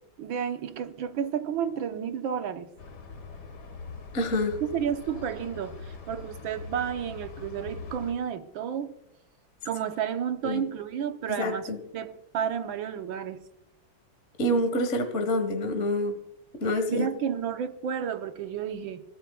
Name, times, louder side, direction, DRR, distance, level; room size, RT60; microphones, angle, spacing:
voice 1, 0.2-2.7 4.7-8.9 9.6-13.4 16.7-19.0, right 8 dB, 75° right, 1.7 m, -31 dB
sound 1, 2.8-8.1, left 4 dB, 55° left, 2.1 m, -42 dB
voice 2, 4.1-4.6 10.4-10.6 11.4-11.8 14.4-16.1 16.6-17.1, left 1 dB, 40° left, 1.6 m, -27 dB
29.0 x 13.5 x 2.3 m
omnidirectional pair, 2.2 m